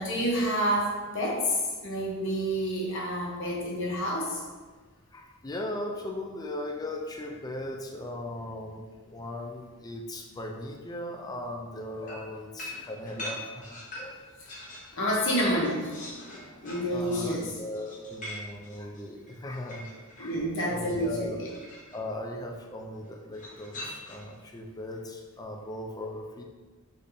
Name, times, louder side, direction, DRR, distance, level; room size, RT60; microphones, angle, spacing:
voice 1, 0.0-1.5 1.8-4.4 14.9-16.0 16.6-17.5 20.2-21.5, equal, 60° left, -3 dB, 1.0 m, -28 dB
voice 2, 5.1-14.2 16.9-19.9 20.2-20.3 20.7-21.4 21.9-26.4, left 1 dB, 20° left, 1 dB, 0.4 m, -38 dB
sound 1, 12.1-15.0 15.3-20.4 21.4-22.0 23.3-24.4, left 1 dB, 35° left, 0.9 m, -43 dB
5.3 x 3.4 x 2.7 m, 1.4 s
head